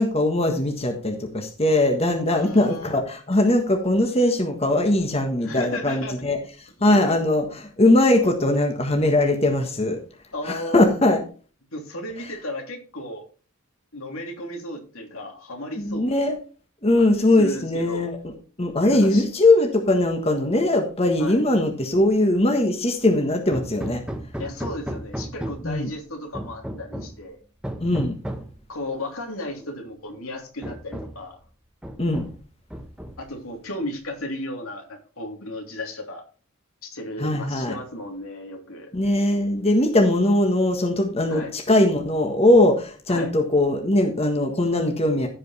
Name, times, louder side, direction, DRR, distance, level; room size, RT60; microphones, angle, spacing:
voice 1, 0.0-6.4 6.8-7.4 7.8-10.0 10.4-11.2 15.8-16.3 16.8-18.2 18.6-24.0 25.6-25.9 27.8-28.2 32.0-32.2 37.2-37.8 38.9-45.3, left 1 dB, 30° left, 3 dB, 1.5 m, -20 dB
voice 2, 2.3-3.0 5.4-6.2 6.8-7.2 10.3-10.9 11.7-13.2 13.9-16.2 17.0-18.1 18.9-19.2 21.2-21.4 24.4-27.4 28.7-31.4 33.2-36.2 36.8-38.9 41.3-41.5 43.1-43.3, left 1 dB, 80° left, 2 dB, 3.0 m, -34 dB
Hammer, 23.5-25.8 26.3-27.2 27.6-28.6 29.6-29.7 30.1-30.2 30.6-31.3 31.8-32.4 32.7-33.4, right 1 dB, 5° right, 1.1 m, -34 dB
15.5 x 5.2 x 4.2 m, 0.37 s
head